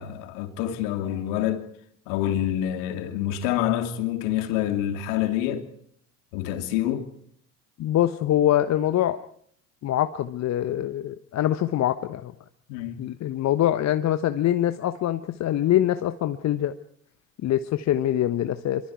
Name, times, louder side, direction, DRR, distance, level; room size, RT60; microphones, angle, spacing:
voice 1, 0.0-1.6 2.1-5.7 6.3-7.1 12.7-13.0, left 11 dB, 55° left, 2.9 m, -27 dB
voice 2, 7.8-9.2 9.8-12.3 13.0-16.7 17.4-18.9, left 12 dB, 35° left, 1.1 m, -24 dB
27.5 x 24.0 x 4.7 m
figure-of-eight pair, 70°, 48 cm